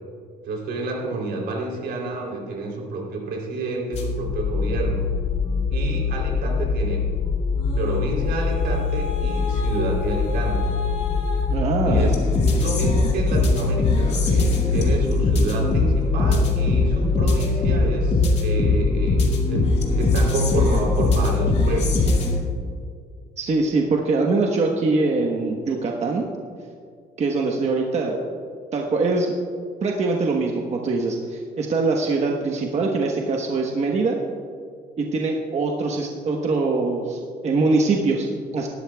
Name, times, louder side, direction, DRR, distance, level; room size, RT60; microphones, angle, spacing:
voice 1, 0.4-5.1 5.7-7.1 7.8-10.7 11.8-12.2 12.5-19.7 19.9-22.1, right 3 dB, 75° right, -1 dB, 3.3 m, -29 dB
sound 1, 3.9-22.4, left 3 dB, 40° left, 2.2 m, -21 dB
voice 2, 11.5-12.2 23.4-26.3 27.2-28.2 28.7-29.3 29.8-34.2 35.0-38.7, right 3 dB, 40° right, 0 dB, 1.2 m, -23 dB
17.5 x 12.5 x 2.3 m, 2.2 s
cardioid pair, 110°, 17 cm